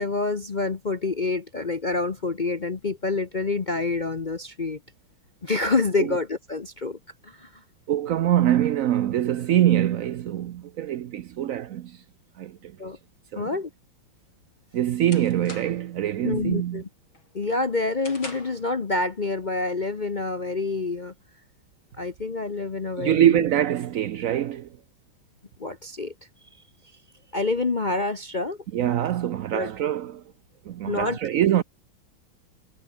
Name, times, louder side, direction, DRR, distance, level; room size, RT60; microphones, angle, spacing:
voice 1, 0.0-4.8 5.4-7.6 12.8-13.0 13.3-13.7 16.2-16.9 17.3-21.1 22.0-23.4 25.6-26.1 27.3-28.6 29.5-29.7 30.9-31.2, left 3 dB, 45° left, 0.6 m, -27 dB
voice 2, 7.9-12.0 12.4-12.8 13.3-13.5 14.7-16.8 23.0-24.7 28.7-30.2 30.6-31.6, right 11 dB, 80° right, 0.7 m, -24 dB
sound 1, 14.2-16.0 16.4-16.8 17.2-18.7, left 2 dB, 75° left, 8.4 m, -43 dB
omnidirectional pair, 2.2 m